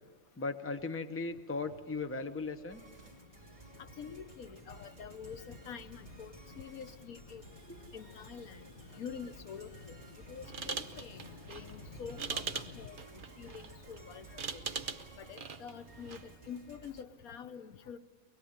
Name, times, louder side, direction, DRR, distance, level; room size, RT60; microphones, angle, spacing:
voice 1, 0.4-2.8, left 3 dB, 10° left, 8 dB, 0.8 m, -37 dB
sound 1, 1.5-12.9, left 4 dB, 40° left, 1.2 m, -55 dB
sound 2, 2.7-17.0, right 2 dB, 25° right, 2.5 m, -55 dB
voice 2, 3.8-7.4 7.9-8.6 9.0-10.0 10.3-14.6 15.2-18.0, left 7 dB, 85° left, 10 dB, 1.4 m, -47 dB
sound 3, 10.4-16.4, right 5 dB, 45° right, 0.9 m, -42 dB
23.5 x 21.0 x 8.7 m, 1.5 s
omnidirectional pair, 1.5 m